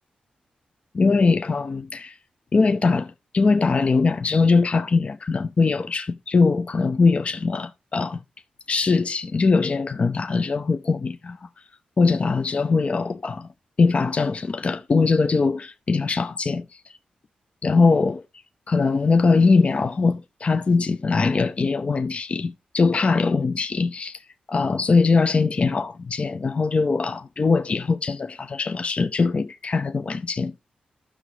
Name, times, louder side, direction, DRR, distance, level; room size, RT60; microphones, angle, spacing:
voice 1, 0.9-2.2 2.5-8.2 8.7-11.4 12.0-13.5 13.8-16.6 17.6-18.2 18.7-24.2 24.5-30.5, left 4 dB, 45° left, 0.5 m, -21 dB
13.0 x 6.0 x 3.2 m
cardioid pair, 55°, 3 cm